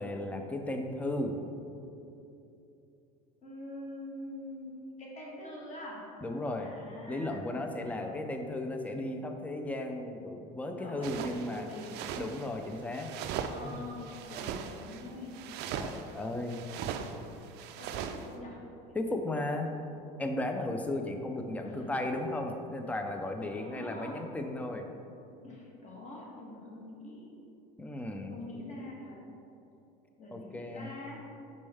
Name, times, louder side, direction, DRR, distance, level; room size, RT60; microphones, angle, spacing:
voice 1, 0.0-1.4 6.2-6.7 7.1-11.7 12.2-13.1 15.7-16.6 18.9-19.8 20.2-24.9 27.8-28.4 30.3-30.9, left 1 dB, 5° left, 4 dB, 0.4 m, -35 dB
voice 2, 3.4-6.0 6.6-7.5 7.9-8.1 10.6-12.0 13.3-15.4 17.8-18.6 18.9-19.0 19.3-19.5 21.6-21.9 23.5-24.2 25.4-27.3 28.3-29.2 30.2-31.2, left 1 dB, 35° left, -3 dB, 1.5 m, -45 dB
sound 1, 11.0-18.3, right 7 dB, 55° right, 0.4 m, -40 dB
5.3 x 5.2 x 3.4 m, 2.7 s
supercardioid pair, 105°, 21 cm